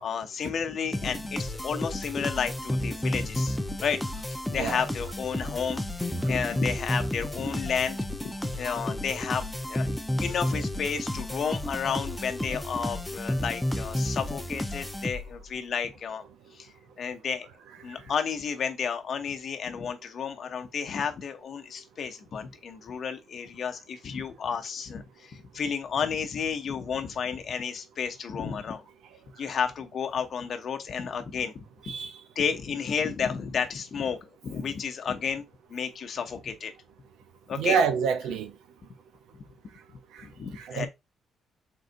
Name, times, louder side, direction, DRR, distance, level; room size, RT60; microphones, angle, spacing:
voice 1, 0.0-8.0 8.2-9.9 10.2-16.2 16.5-17.5 17.8-28.8 29.4-31.5 32.4-35.4 35.7-36.7 37.5-37.8 40.2-40.9, left 6 dB, 55° left, 0.8 m, -32 dB
sound 1, 0.9-15.5, left 1 dB, 5° left, 0.6 m, -32 dB
voice 2, 37.5-38.5 40.6-40.9, right 6 dB, 85° right, 0.6 m, -26 dB
4.0 x 3.8 x 2.6 m
cardioid pair, 90°, 0 cm